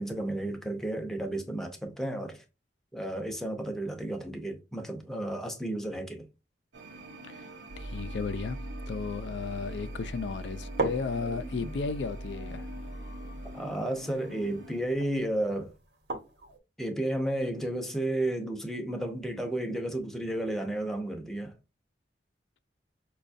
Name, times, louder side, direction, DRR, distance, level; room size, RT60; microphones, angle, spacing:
voice 1, 0.0-2.4 2.9-6.3 13.5-15.7 16.8-21.5, right 1 dB, ahead, 0.6 m, -32 dB
sound 1, 6.7-14.8, equal, 85° right, 0.8 m, -47 dB
sound 2, 7.7-14.7, right 1 dB, 45° left, 0.7 m, -41 dB
voice 2, 7.8-8.6 8.9-12.7, left 4 dB, 85° left, 0.4 m, -34 dB
sound 3, 9.5-9.6 10.0-10.1 10.6-16.6, right 2 dB, 65° right, 1.1 m, -39 dB
5.1 x 2.3 x 2.5 m
head